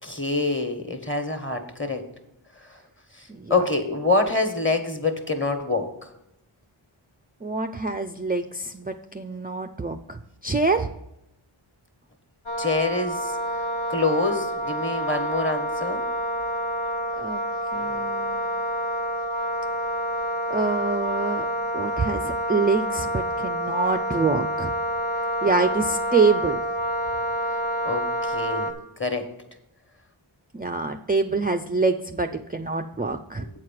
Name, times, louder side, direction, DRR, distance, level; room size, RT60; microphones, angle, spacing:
voice 1, 0.0-2.0 2.6-2.8 3.1-5.9 12.6-13.4 13.9-16.0 27.8-28.7 29.0-29.3 33.4-33.5, left 3 dB, 25° left, 6 dB, 1.4 m, -26 dB
voice 2, 7.4-10.9 17.2-17.4 17.7-18.5 20.5-21.5 21.7-24.7 25.1-26.6 30.5-33.5, right 4 dB, 20° right, 6 dB, 0.4 m, -26 dB
Wind instrument woodwind instrument, 12.5-28.7, equal, 80° left, 1.2 m, -28 dB
8.5 x 4.8 x 7.5 m, 0.84 s
wide cardioid pair, 45°, 48 cm